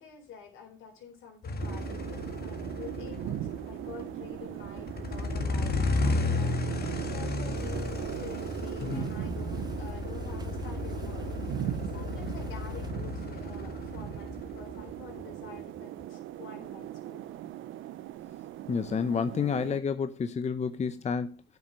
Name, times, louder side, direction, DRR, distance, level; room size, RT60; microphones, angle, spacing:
voice 1, 0.0-3.4 3.6-6.6 7.0-11.3 11.9-17.3, left 6 dB, 80° left, 3.7 m, -48 dB
sound 1, 1.4-16.0, left 3 dB, 50° left, 1.8 m, -34 dB
sound 2, 1.6-19.8, right 13 dB, 85° right, 0.6 m, -39 dB
sound 3, 7.5-12.9, right 2 dB, 20° right, 1.3 m, -49 dB
voice 2, 18.7-21.4, left 6 dB, 35° left, 0.7 m, -30 dB
9.2 x 5.8 x 5.6 m
cardioid pair, 90°, 20 cm